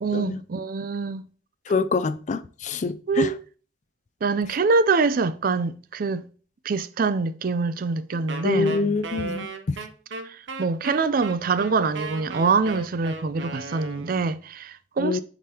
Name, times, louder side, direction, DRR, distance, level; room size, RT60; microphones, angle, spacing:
voice 1, 0.0-1.2 3.1-3.4 4.2-6.2 6.6-8.8 10.3-15.2, right 4 dB, 50° right, 0.4 m, -24 dB
voice 2, 1.7-3.3 8.4-9.8 15.0-15.2, left 4 dB, 40° left, 0.4 m, -25 dB
Wind instrument woodwind instrument, 8.3-14.4, right 4 dB, 75° right, 0.8 m, -36 dB
6.8 x 5.1 x 2.9 m
head